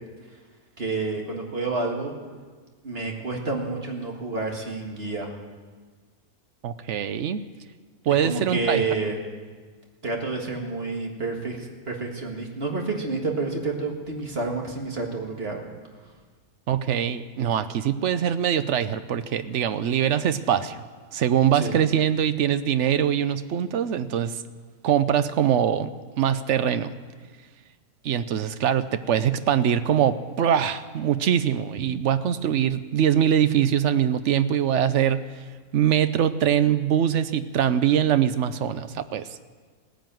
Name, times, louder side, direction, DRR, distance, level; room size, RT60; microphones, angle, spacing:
voice 1, 0.8-2.1 2.8-5.3 8.1-9.2 10.0-15.7 21.5-21.8, right 3 dB, 40° right, 1 dB, 2.0 m, -29 dB
voice 2, 6.6-7.4 8.1-8.8 16.7-20.8 21.1-24.4 24.8-25.9 26.2-26.9 28.0-35.2 35.7-39.5, right 9 dB, 60° right, 12 dB, 0.8 m, -23 dB
16.5 x 10.5 x 7.6 m, 1.5 s
omnidirectional pair, 1.6 m